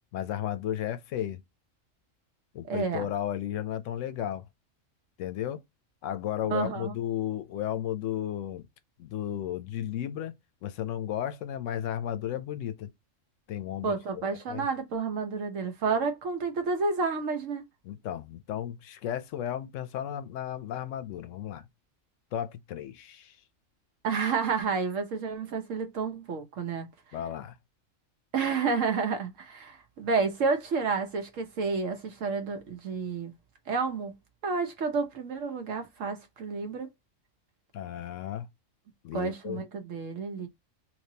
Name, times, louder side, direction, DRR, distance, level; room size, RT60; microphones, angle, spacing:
voice 1, 0.1-1.4 2.5-4.4 5.2-5.6 6.0-8.7 9.0-10.3 10.6-12.9 13.5-14.7 17.8-21.7 22.3-23.4 27.1-27.6 37.7-38.5 39.0-39.6, left 11 dB, 75° left, 0.9 m, -34 dB
voice 2, 2.7-3.1 6.5-6.9 13.8-17.6 24.0-26.9 28.3-33.3 33.7-34.1 34.4-36.9 39.1-40.5, right 4 dB, 75° right, 1.2 m, -30 dB
3.5 x 3.0 x 2.7 m
omnidirectional pair, 1.3 m